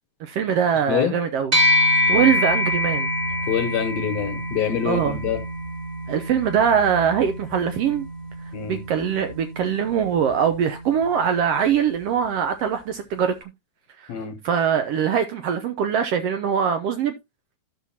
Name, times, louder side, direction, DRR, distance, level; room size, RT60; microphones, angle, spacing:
voice 1, 0.2-1.5 2.1-3.1 4.8-5.2 6.1-8.1 8.7-13.3 14.0-14.1 14.4-17.2, right 8 dB, 75° right, 1.5 m, -22 dB
voice 2, 0.9-1.2 3.5-5.4 8.5-8.8 14.1-14.4, left 9 dB, 75° left, 1.9 m, -25 dB
sound 1, 1.5-11.1, left 1 dB, 30° right, 0.8 m, -26 dB
14.0 x 6.1 x 2.8 m
omnidirectional pair, 3.3 m